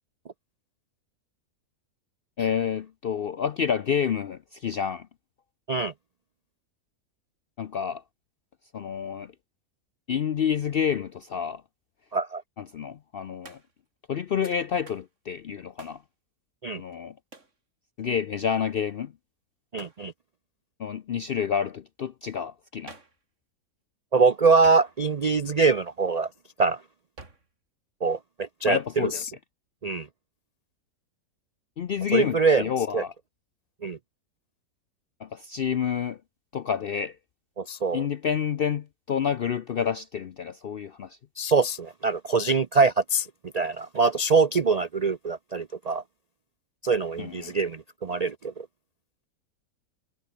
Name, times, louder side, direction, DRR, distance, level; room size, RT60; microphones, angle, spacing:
voice 1, 2.4-5.1 7.6-8.0 8.7-9.3 10.1-11.6 12.6-13.6 14.1-16.0 16.8-17.1 18.0-19.1 20.8-22.9 28.6-29.2 31.8-33.1 35.2-36.2 36.5-37.2 37.9-41.2 47.2-47.5, left 7 dB, 65° left, 0.5 m, -29 dB
Hands, 13.4-13.9 14.9-15.1 15.8-16.1 17.3-17.6 19.7-20.1 22.9-23.2 24.6-25.2 27.2-27.5, right 3 dB, 50° right, 3.6 m, -48 dB
voice 2, 19.7-20.1 24.1-26.3 26.6-26.8 28.0-29.2 29.8-30.1 32.1-32.6 32.9-33.0 33.8-34.0 37.6-38.0 41.4-43.3 43.5-46.0 46.8-48.7, right 4 dB, 80° right, 0.3 m, -24 dB
omnidirectional pair, 1.6 m